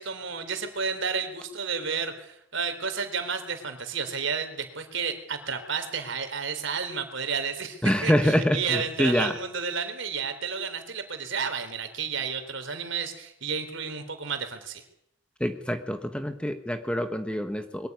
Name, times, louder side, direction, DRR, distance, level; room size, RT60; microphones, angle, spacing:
voice 1, 0.0-14.8, right 5 dB, 65° right, 7 dB, 3.7 m, -31 dB
voice 2, 7.8-9.3 15.4-17.9, equal, 5° left, 8 dB, 1.3 m, -25 dB
22.5 x 14.5 x 9.6 m, 0.76 s
head